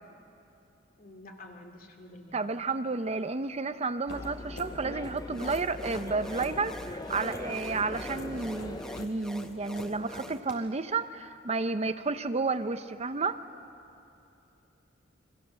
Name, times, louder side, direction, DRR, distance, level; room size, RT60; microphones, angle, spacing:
voice 1, 1.0-2.4, left 1 dB, 50° left, 3 dB, 2.7 m, -49 dB
voice 2, 2.3-13.4, right 3 dB, 35° right, 10 dB, 0.7 m, -31 dB
sound 1, 4.1-10.5, left 2 dB, 70° left, 4.3 m, -47 dB
sound 2, 4.1-9.1, left 2 dB, 20° left, 0.7 m, -41 dB
sound 3, 5.3-10.4, left 1 dB, 5° left, 1.0 m, -46 dB
29.0 x 24.5 x 7.6 m, 2.8 s
head